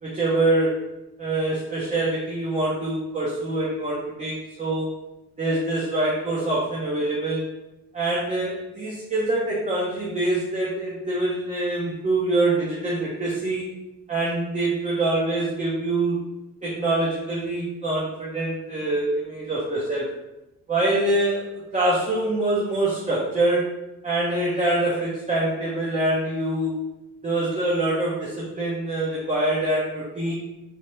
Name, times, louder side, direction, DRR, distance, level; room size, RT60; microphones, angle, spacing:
voice 1, 0.0-0.8 1.2-4.9 5.4-7.5 7.9-13.6 14.1-16.2 16.6-20.1 20.7-23.7 24.0-26.8 27.2-30.3, right 2 dB, 25° right, -6 dB, 0.9 m, -25 dB
4.4 x 2.2 x 3.2 m, 0.96 s
cardioid pair, 90°, 30 cm